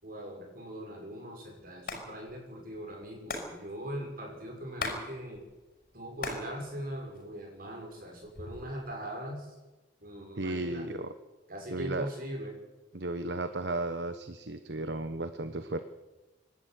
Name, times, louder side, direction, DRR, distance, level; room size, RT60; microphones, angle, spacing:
voice 1, 0.0-5.4 5.9-9.6 10.0-10.9 11.5-12.5, equal, 50° right, 1 dB, 6.5 m, -41 dB
Hands, 1.7-2.0 2.3-2.4 2.6-5.0 5.3-6.5 6.8-7.6 8.2-8.8, left 3 dB, 55° left, 5.9 m, -38 dB
voice 2, 10.4-11.1 11.7-12.1 12.9-15.8, right 2 dB, 70° right, 10 dB, 1.1 m, -34 dB
25.5 x 12.5 x 9.4 m, 1.1 s
head